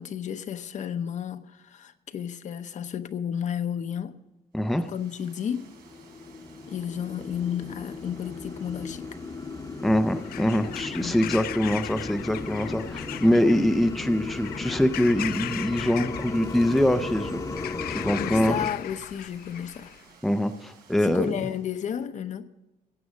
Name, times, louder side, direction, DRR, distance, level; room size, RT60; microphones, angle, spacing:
voice 1, 0.0-4.2 4.8-5.7 6.7-9.2 11.0-11.4 17.9-19.9 21.0-22.5, left 8 dB, 50° left, 0.8 m, -32 dB
voice 2, 4.5-4.9 9.8-17.4 17.9-18.6 20.2-21.3, equal, ahead, 0.5 m, -24 dB
Water, 4.5-21.8, right 5 dB, 90° right, 3.8 m, -55 dB
sound 1, 5.6-18.7, left 3 dB, 25° left, 1.0 m, -35 dB
Bird vocalization bird call bird song / Crow, 10.2-20.0, left 14 dB, 80° left, 0.4 m, -39 dB
16.0 x 8.3 x 6.3 m
cardioid pair, 160°, 16 cm